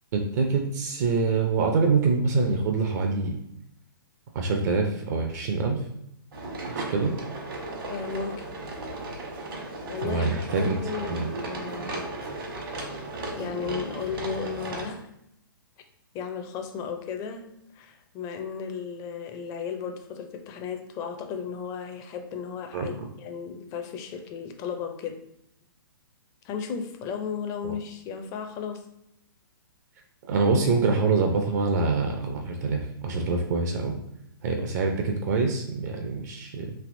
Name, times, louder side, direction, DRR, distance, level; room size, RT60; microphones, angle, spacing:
voice 1, 0.1-3.4 4.3-5.8 6.7-7.2 10.0-10.7 11.1-11.3 22.7-22.9 27.6-27.7 30.3-34.0 34.4-36.7, right 4 dB, 45° right, 3 dB, 0.5 m, -25 dB
sound 1, 6.3-14.9, right 2 dB, 70° right, 1.1 m, -35 dB
voice 2, 7.9-8.5 9.9-12.0 13.4-15.1 16.1-17.5 17.7-25.2 26.4-28.8, left 6 dB, 25° left, 6 dB, 0.4 m, -35 dB
3.3 x 2.7 x 2.6 m, 0.79 s
hypercardioid pair, 125°, 12 cm